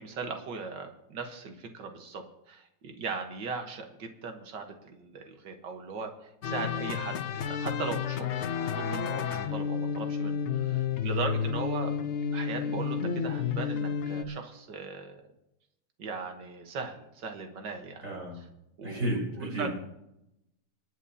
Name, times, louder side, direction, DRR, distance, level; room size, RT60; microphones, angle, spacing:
voice 1, 0.0-6.1 6.4-8.3 8.7-11.9 12.3-15.3 16.0-18.0 18.8-19.7, right 4 dB, 85° right, 4 dB, 1.9 m, -38 dB
sound 1, 6.4-14.2, left 7 dB, 60° left, 0.7 m, -31 dB
voice 2, 18.0-18.4 18.8-19.7, right 1 dB, 45° right, -2 dB, 5.0 m, -32 dB
26.5 x 9.9 x 2.8 m, 0.85 s
omnidirectional pair, 1.9 m